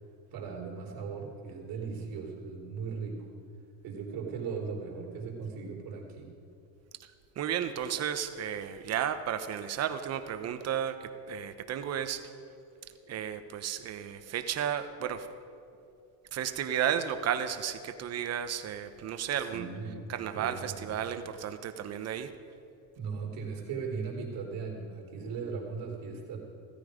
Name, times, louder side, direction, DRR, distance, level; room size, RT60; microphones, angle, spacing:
voice 1, 0.3-3.2 3.8-6.3 19.4-20.0 20.3-20.9 23.0-26.4, right 5 dB, 55° right, -2 dB, 3.7 m, -38 dB
voice 2, 7.4-11.0 11.3-12.2 13.1-15.3 16.3-19.7 20.1-22.3, right 9 dB, 40° right, 9 dB, 1.0 m, -33 dB
16.5 x 13.5 x 5.1 m, 2.7 s
cardioid pair, 135°, 41 cm